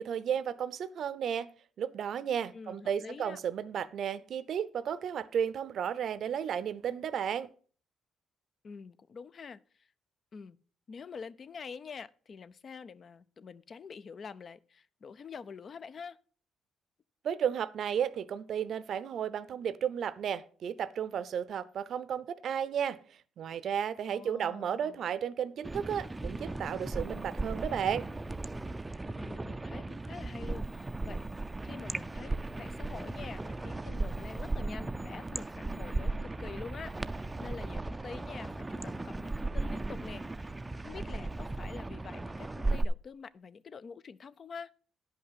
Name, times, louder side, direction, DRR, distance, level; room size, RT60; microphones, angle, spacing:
voice 1, 0.0-1.5 1.8-7.5 17.2-23.0 23.4-28.1, right 8 dB, 65° right, 0.6 m, -33 dB
voice 2, 2.5-3.4 8.6-9.9 10.3-10.6 10.9-16.2 24.1-25.0 29.2-31.2 31.6-44.7, left 5 dB, 45° left, 0.5 m, -46 dB
sound 1, 25.6-42.8, right 2 dB, 15° right, 0.4 m, -36 dB
10.5 x 5.5 x 5.8 m
cardioid pair, 90°, 0 cm